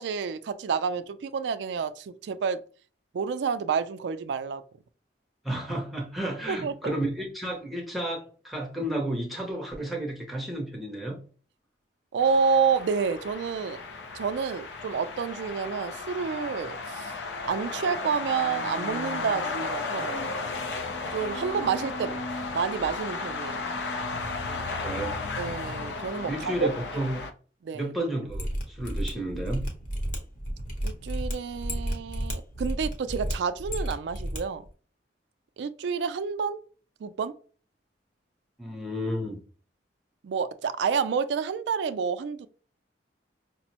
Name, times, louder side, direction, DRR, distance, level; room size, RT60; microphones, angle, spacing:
voice 1, 0.0-2.6 3.1-4.6 6.5-7.0 12.1-13.8 14.1-17.1 17.5-20.2 21.1-22.1 22.5-23.7 25.4-26.7 27.6-27.9 30.8-34.6 35.6-36.6 37.0-37.3 40.2-42.5, right 6 dB, 75° right, 0.3 m, -29 dB
voice 2, 5.4-11.2 24.4-25.2 26.3-27.2 27.7-29.7 38.6-39.4, right 1 dB, ahead, 0.6 m, -32 dB
sound 1, 12.2-27.3, left 3 dB, 75° left, 0.5 m, -34 dB
Mechanisms, 28.3-34.4 34.6-34.7, equal, 45° left, 0.8 m, -32 dB
5.1 x 2.0 x 2.8 m
head